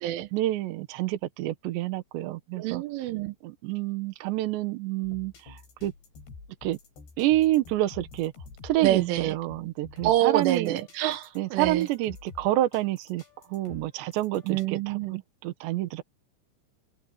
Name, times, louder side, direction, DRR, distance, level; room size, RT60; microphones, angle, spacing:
voice 1, 0.3-2.8 3.4-5.9 6.6-6.8 7.2-8.3 8.6-10.8 11.4-13.2 13.5-16.0, right 15 dB, 75° right, 3.4 m, -28 dB
voice 2, 2.6-3.4 8.8-9.4 10.0-11.9 14.5-15.2, right 13 dB, 90° right, 3.8 m, -27 dB
sound 1, 5.0-14.7, left 4 dB, 60° left, 8.5 m, -49 dB
open air
omnidirectional pair, 5.5 m